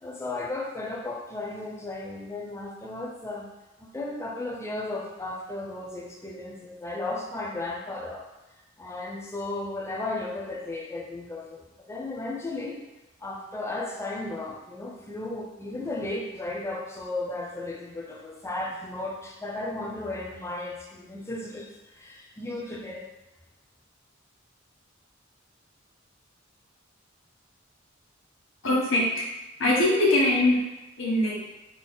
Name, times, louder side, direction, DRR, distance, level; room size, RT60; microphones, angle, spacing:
voice 1, 0.0-3.5 3.8-8.3 8.8-11.6 11.9-12.8 13.2-23.1, left 2 dB, 15° left, -1 dB, 0.5 m, -35 dB
voice 2, 28.6-29.3 29.6-30.6 31.0-31.4, left 1 dB, 80° left, -5 dB, 1.1 m, -22 dB
3.7 x 2.2 x 3.8 m, 1.0 s
head